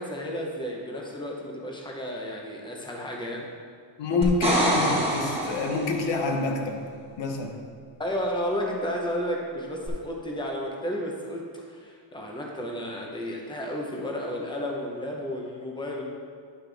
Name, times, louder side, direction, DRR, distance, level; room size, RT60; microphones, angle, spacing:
voice 1, 0.0-3.5 8.0-16.0, equal, 10° left, -1 dB, 0.9 m, -32 dB
voice 2, 4.0-6.9 7.2-7.6, left 3 dB, 65° left, 3 dB, 1.1 m, -27 dB
sound 1, 4.2-6.1 9.9-10.0, right 1 dB, 10° right, 1.5 m, -25 dB
10.0 x 5.6 x 3.4 m, 2.1 s
cardioid pair, 165°, 47 cm